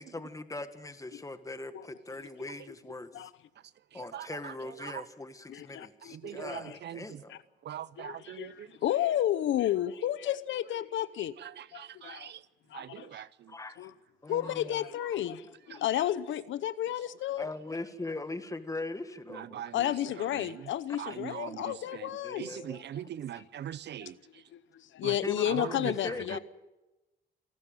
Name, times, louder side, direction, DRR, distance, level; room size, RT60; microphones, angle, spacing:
voice 1, 0.0-3.3 3.9-7.4 13.5-13.9 14.2-14.8 15.1-15.2 15.7-15.8 17.4-19.7 21.3-21.6 22.2-22.8 25.2-26.4, left 2 dB, 15° left, 1.7 m, -40 dB
voice 2, 4.0-4.5 4.8-5.0 6.1-7.2 7.7-8.7 11.4-11.5 11.7-12.4 12.7-13.3 19.3-19.7 21.0-21.6 22.4-24.1 25.0-25.1 25.5-25.7, right 11 dB, 60° right, 0.7 m, -41 dB
voice 3, 5.5-6.8 7.3-7.4 8.0-11.3 11.7-12.3 12.7-13.2 13.8-13.9 14.3-17.5 19.7-23.0 23.3-23.5 24.0-24.1 24.5-26.4, left 12 dB, 75° left, 0.9 m, -32 dB
27.0 x 12.5 x 9.2 m
cardioid pair, 90°, 20 cm